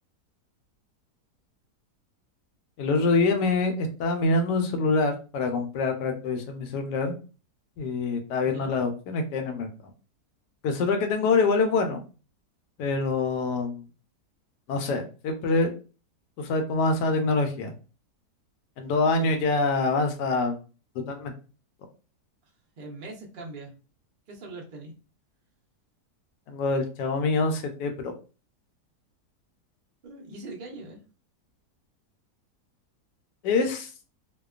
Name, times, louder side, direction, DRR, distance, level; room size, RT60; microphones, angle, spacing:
voice 1, 2.8-7.2 7.8-9.7 10.6-12.0 12.8-13.8 14.7-15.7 16.4-17.7 18.8-20.6 21.1-21.3 26.5-27.9 33.4-33.9, left 3 dB, 85° left, 6 dB, 1.2 m, -25 dB
voice 2, 8.4-8.8 19.2-19.9 22.8-23.7 24.3-25.0 30.0-31.0, right 2 dB, 65° right, -1 dB, 0.5 m, -41 dB
2.8 x 2.2 x 2.3 m, 0.35 s
omnidirectional pair, 1.8 m